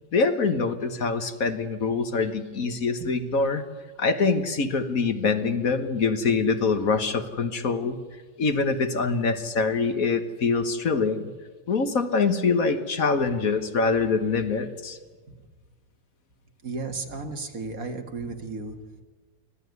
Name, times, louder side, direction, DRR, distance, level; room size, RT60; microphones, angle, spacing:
voice 1, 0.1-3.6 4.0-8.0 8.4-11.3 11.7-15.0, left 4 dB, 50° left, 8 dB, 1.7 m, -24 dB
voice 2, 16.6-19.0, right 3 dB, 50° right, 4 dB, 2.2 m, -34 dB
25.0 x 15.5 x 9.5 m, 1.4 s
omnidirectional pair, 2.0 m